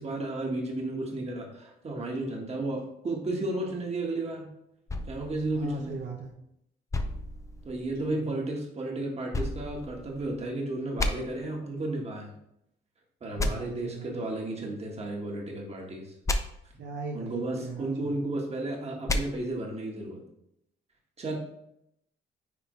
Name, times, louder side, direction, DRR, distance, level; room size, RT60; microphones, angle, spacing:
voice 1, 0.0-4.5 5.1-5.9 7.6-12.3 13.2-16.1 17.1-20.2 21.2-21.3, right 2 dB, 35° right, 0 dB, 1.5 m, -33 dB
sound 1, 4.9-6.3 6.9-8.1 9.3-10.5 11.0-11.1 13.4-13.5 16.3-16.4 19.1-19.2, left 2 dB, 15° left, 0.5 m, -32 dB
voice 2, 5.5-6.3 8.1-8.3 11.0-11.1 13.3-14.2 16.8-17.3 17.6-18.1, right 3 dB, 70° right, 1 dB, 0.9 m, -39 dB
9.5 x 3.3 x 3.1 m, 0.78 s
cardioid pair, 125°, 20 cm